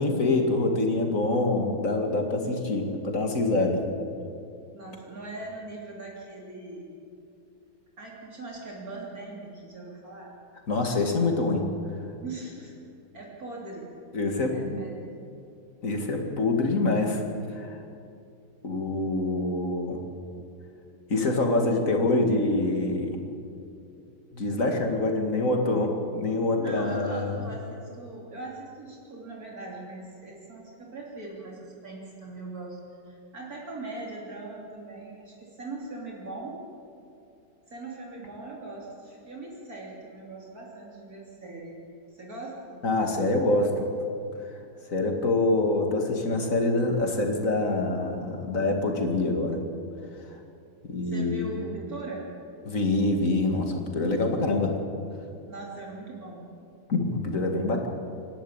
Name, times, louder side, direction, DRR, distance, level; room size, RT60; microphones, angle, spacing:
voice 1, 0.0-3.8 10.7-11.7 14.1-14.8 15.8-17.2 17.5-17.8 18.6-20.0 21.1-23.2 24.3-27.4 42.8-43.9 44.9-49.6 50.9-51.5 52.6-54.7 56.9-57.9, left 2 dB, 50° left, 3 dB, 2.5 m, -25 dB
voice 2, 4.7-7.0 8.0-10.3 12.2-12.7 13.1-13.9 14.5-14.9 26.6-32.8 33.1-36.6 37.7-41.8 42.1-42.8 51.0-52.3 55.4-56.5, right 2 dB, 55° right, -3 dB, 3.6 m, -40 dB
26.5 x 12.0 x 8.8 m, 2.6 s
omnidirectional pair, 1.9 m